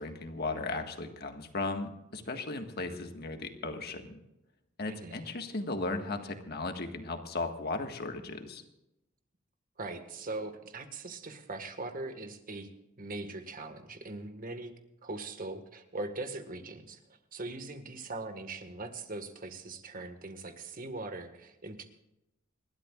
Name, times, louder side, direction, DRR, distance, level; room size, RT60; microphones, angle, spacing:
voice 1, 0.0-4.1 4.8-8.6, left 3 dB, 50° left, 5 dB, 1.7 m, -36 dB
voice 2, 4.9-5.3 9.8-12.7 13.0-14.7 15.0-17.0 17.3-21.8, right 2 dB, 45° right, 7 dB, 1.7 m, -41 dB
29.5 x 12.5 x 2.5 m, 0.90 s
head